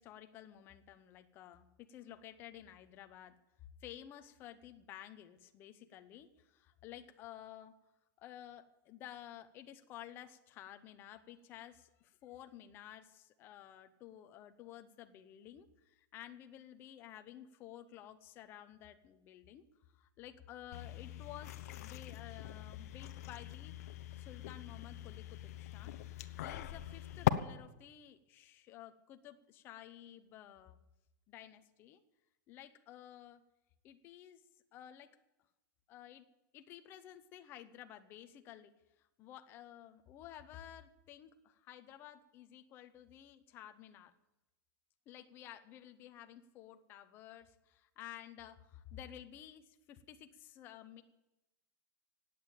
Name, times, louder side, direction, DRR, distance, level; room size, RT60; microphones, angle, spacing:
voice 1, 0.0-3.3 3.8-7.7 8.2-19.6 19.9-23.7 24.2-25.9 26.4-30.8 31.3-32.0 32.5-33.4 33.8-34.4 34.7-35.2 35.9-36.3 36.5-38.7 39.0-44.1 45.1-51.0, left 11 dB, 20° left, 9 dB, 0.8 m, -53 dB
sound 1, 20.7-27.3, left 14 dB, 50° left, 0.8 m, -40 dB
16.5 x 8.6 x 8.9 m, 0.96 s
supercardioid pair, 180°, 10 cm